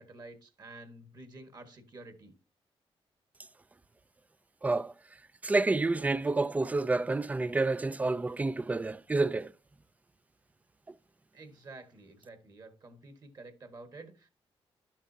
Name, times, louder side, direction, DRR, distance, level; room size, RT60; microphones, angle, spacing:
voice 1, 0.0-2.3 11.3-14.3, right 2 dB, 40° right, 1.5 m, -50 dB
voice 2, 4.6-4.9 5.4-9.5, right 3 dB, 15° right, 0.4 m, -29 dB
11.5 x 7.3 x 2.7 m
wide cardioid pair, 145°, 10 cm